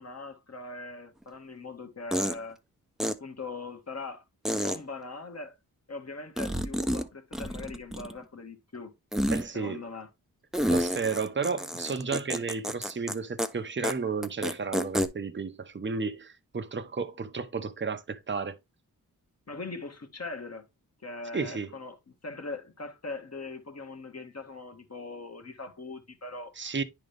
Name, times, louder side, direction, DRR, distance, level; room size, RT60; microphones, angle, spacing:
voice 1, 0.0-2.6 3.0-4.2 4.5-5.6 5.9-8.9 9.5-10.1 19.5-20.7 21.0-26.5, left 3 dB, 40° left, 1.7 m, -41 dB
sound 1, 1.2-1.3 2.1-2.4 3.0-3.1 4.5-4.8 6.4-7.1 7.3-8.2 9.1-9.4 10.5-13.1 13.4-13.5 13.8-13.9 14.2-15.1, equal, ahead, 0.8 m, -29 dB
voice 2, 9.3-9.8 10.7-18.6 21.3-21.7 26.6-26.8, right 5 dB, 30° right, 0.9 m, -32 dB
10.0 x 3.8 x 3.4 m
wide cardioid pair, 70°, 37 cm